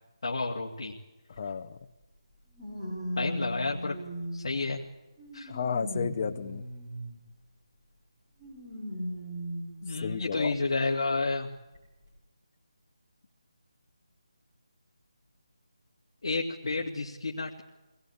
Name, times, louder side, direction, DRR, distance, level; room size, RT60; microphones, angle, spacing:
voice 1, 0.2-1.0 3.2-4.0 4.3-4.8 5.3-5.5 9.8-11.5 16.2-17.6, left 3 dB, 50° left, -1 dB, 2.3 m, -30 dB
sound 1, 1.3-1.4 2.5-4.6 5.2-7.2 8.4-9.8 10.5-10.6 11.7-11.8, equal, 10° right, 6.9 m, -37 dB
voice 2, 1.4-1.8 5.5-6.6 10.0-10.5, left 6 dB, 25° left, 8 dB, 0.8 m, -32 dB
24.0 x 19.0 x 8.6 m, 1.1 s
figure-of-eight pair, 175°, 3 cm